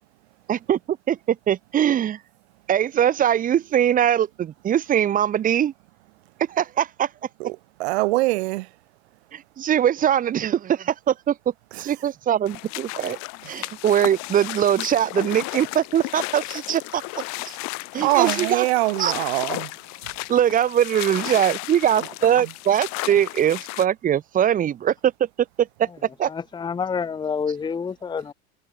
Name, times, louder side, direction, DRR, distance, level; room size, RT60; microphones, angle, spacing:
voice 1, 0.5-2.2 2.7-5.7 6.5-7.1 9.3-11.4 11.8-13.2 13.5-17.0 17.4-17.6 17.9-18.7 19.0-19.1 20.3-25.1 25.6-25.9 26.2-26.3, right 10 dB, 25° right, 0.8 m, -22 dB
voice 2, 7.4-8.7 18.0-19.7, right 21 dB, 70° right, 0.5 m, -23 dB
sound 1, 12.5-23.9, left 27 dB, 55° left, 3.8 m, -33 dB
voice 3, 25.8-28.3, left 6 dB, 15° left, 0.9 m, -29 dB
hypercardioid pair, 105°, 34 cm